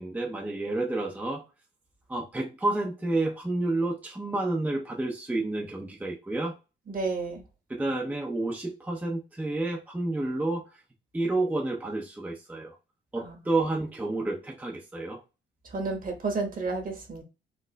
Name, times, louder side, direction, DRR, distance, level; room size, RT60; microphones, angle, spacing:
voice 1, 0.0-1.5 2.1-6.5 7.7-10.6 11.1-12.8 13.1-15.2, right 2 dB, 10° right, 0.6 m, -30 dB
voice 2, 6.9-7.4 13.2-13.4 15.7-17.2, right 3 dB, 45° right, 1.2 m, -31 dB
4.3 x 2.4 x 2.2 m
cardioid pair, 90°, 20 cm